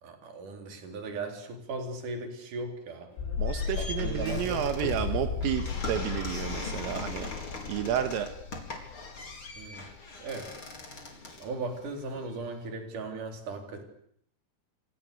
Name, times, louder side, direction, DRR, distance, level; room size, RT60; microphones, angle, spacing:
voice 1, 0.0-3.1 3.8-4.6 9.6-9.8 10.2-10.6 11.4-13.8, right 3 dB, 40° right, 4 dB, 4.9 m, -37 dB
sound 1, 3.1-12.2, left 3 dB, 25° left, 4.4 m, -41 dB
sound 2, 3.2-10.0 10.3-10.4, left 6 dB, 75° left, 6.8 m, -35 dB
voice 2, 3.4-7.3 7.7-8.3, right 10 dB, 80° right, 7 dB, 4.1 m, -31 dB
28.5 x 26.5 x 6.8 m, 0.69 s
omnidirectional pair, 6.0 m